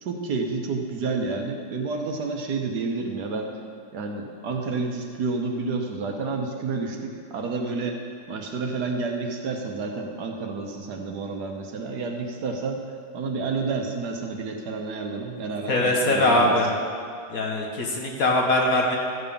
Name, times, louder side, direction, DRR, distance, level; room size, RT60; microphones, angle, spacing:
voice 1, 0.0-3.5 3.9-8.0 8.3-12.8 13.1-16.6, right 4 dB, 75° right, 2 dB, 1.5 m, -30 dB
voice 2, 15.7-16.7 17.3-19.0, left 1 dB, 60° left, 0 dB, 1.6 m, -21 dB
13.0 x 5.5 x 6.9 m, 2.2 s
omnidirectional pair, 1.8 m